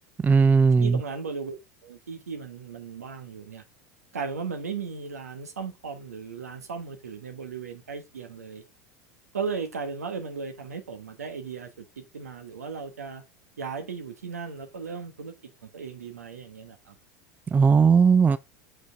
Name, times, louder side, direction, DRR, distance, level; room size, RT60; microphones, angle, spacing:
voice 1, 0.2-1.0 17.5-18.4, right 5 dB, 20° right, 0.4 m, -18 dB
voice 2, 0.8-1.6 1.8-3.6 4.1-8.6 9.3-13.2 13.6-15.3 15.6-16.9, right 5 dB, 90° right, 1.3 m, -36 dB
6.5 x 5.1 x 3.4 m
hypercardioid pair, 85°, 8 cm